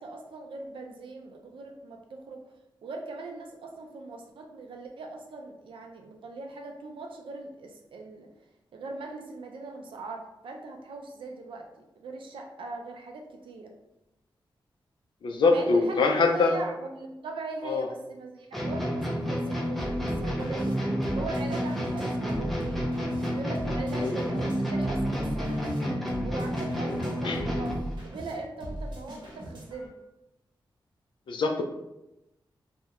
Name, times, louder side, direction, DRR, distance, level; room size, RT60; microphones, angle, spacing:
voice 1, 0.0-2.4 2.8-8.3 8.7-11.6 12.0-13.7 15.5-20.7 21.2-22.9 23.3-27.7 28.1-29.9, right 3 dB, 80° right, 2 dB, 0.4 m, -40 dB
voice 2, 15.2-16.6 17.6-17.9 24.0-24.2 27.2-27.4 31.3-31.6, left 4 dB, 70° left, 3 dB, 0.3 m, -24 dB
sound 1, 18.5-27.9, equal, ahead, 0.4 m, -30 dB
sound 2, 19.8-29.9, right 1 dB, 65° right, 0.8 m, -39 dB
2.3 x 2.1 x 2.8 m, 0.92 s
wide cardioid pair, 160°, 9 cm